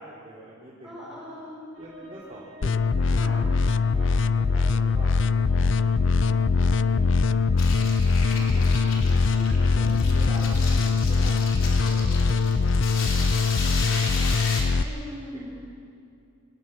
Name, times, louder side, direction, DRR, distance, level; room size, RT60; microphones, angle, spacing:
voice 1, 0.0-1.1 1.8-2.8 3.3-3.6 3.9-4.1 4.4-6.3 6.6-8.2 8.5-8.9 9.4-9.9 10.1-13.6, right 1 dB, 30° right, -7 dB, 3.3 m, -46 dB
voice 2, 0.8-1.6 2.0-2.1 3.1-3.4 8.3-9.1 14.7-15.5, equal, ahead, -7 dB, 7.0 m, -41 dB
sound 1, 1.7-13.3, equal, 90° right, 5.3 m, -48 dB
sound 2, 2.6-14.8, left 4 dB, 65° left, 0.5 m, -22 dB
sound 3, 7.6-14.6, left 3 dB, 85° left, 3.6 m, -34 dB
25.0 x 19.0 x 6.1 m, 2.5 s
head